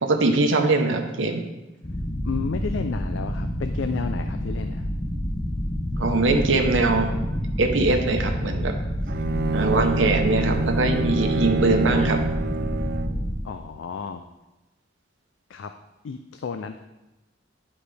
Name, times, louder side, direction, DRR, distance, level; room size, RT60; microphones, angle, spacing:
voice 1, 0.0-1.4 6.0-7.1 7.6-8.7 9.5-12.2, right 3 dB, 70° right, 3 dB, 0.9 m, -22 dB
sound 1, 1.8-13.4, equal, 25° left, 0.8 m, -28 dB
voice 2, 2.2-4.9 13.4-14.2 15.5-15.7 16.0-16.8, left 5 dB, 70° left, 7 dB, 0.4 m, -32 dB
Bowed string instrument, 9.1-13.3, right 3 dB, 50° right, 0.4 m, -27 dB
11.0 x 4.9 x 3.3 m, 1.0 s
head